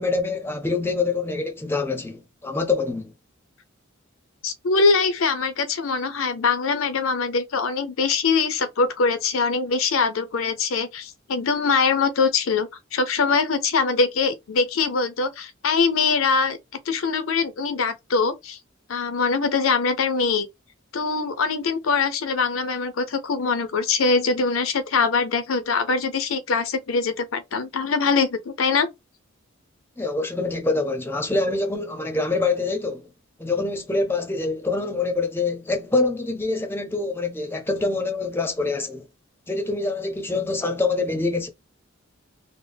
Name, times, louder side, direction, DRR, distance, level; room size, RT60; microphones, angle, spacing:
voice 1, 0.0-3.1 30.0-33.1 33.4-39.1 39.5-41.5, left 3 dB, 10° left, 0.5 m, -25 dB
voice 2, 4.4-16.6 16.9-18.6 18.9-20.5 20.9-28.9, left 4 dB, 75° left, 0.5 m, -23 dB
3.6 x 2.0 x 3.3 m
head